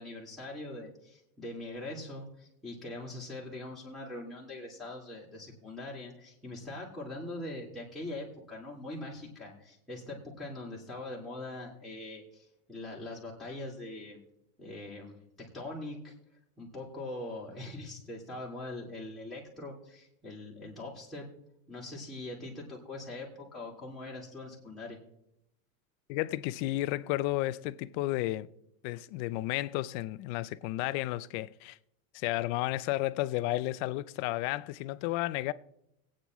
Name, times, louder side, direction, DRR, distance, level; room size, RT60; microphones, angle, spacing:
voice 1, 0.0-14.2 14.6-15.1 15.5-16.1 16.6-21.3 21.7-25.0, left 2 dB, ahead, 2.6 m, -42 dB
voice 2, 26.1-28.5 28.8-31.8 32.1-35.5, left 17 dB, 55° left, 0.7 m, -32 dB
22.5 x 8.9 x 3.1 m
supercardioid pair, 135°, 43 cm